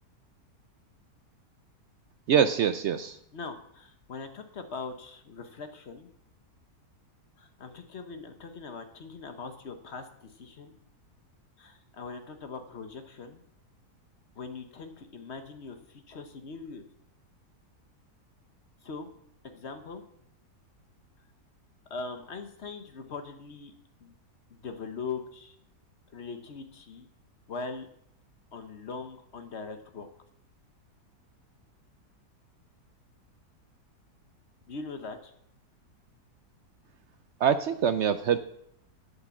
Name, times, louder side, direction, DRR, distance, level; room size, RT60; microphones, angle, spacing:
voice 1, 2.3-3.2 37.4-38.4, right 8 dB, 75° right, 11 dB, 0.6 m, -24 dB
voice 2, 3.3-6.1 7.4-10.7 11.6-13.4 14.3-16.8 18.8-19.1 19.4-20.0 21.9-23.7 24.0-24.1 24.5-25.6 26.1-27.1 27.5-27.9 28.5-30.1 34.7-35.3, left 4 dB, 45° left, 8 dB, 1.1 m, -41 dB
8.6 x 8.1 x 7.2 m, 0.72 s
omnidirectional pair, 1.8 m